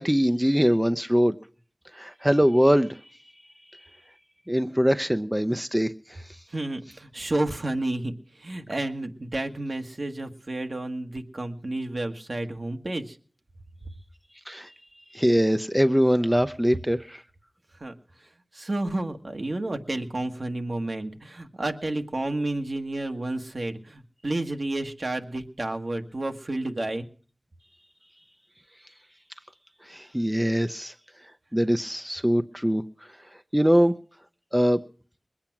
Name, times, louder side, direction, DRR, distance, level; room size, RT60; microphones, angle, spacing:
voice 1, 0.0-1.3 1.9-3.0 4.5-6.2 14.5-14.7 15.1-17.2 29.9-30.9 31.5-32.8 33.5-33.9 34.5-34.8, equal, 5° right, 9 dB, 0.7 m, -22 dB
voice 2, 6.5-13.2 17.8-17.9 18.5-27.0, right 2 dB, 60° right, 5 dB, 1.5 m, -31 dB
21.0 x 8.8 x 6.0 m, 0.43 s
wide cardioid pair, 45°, 0 cm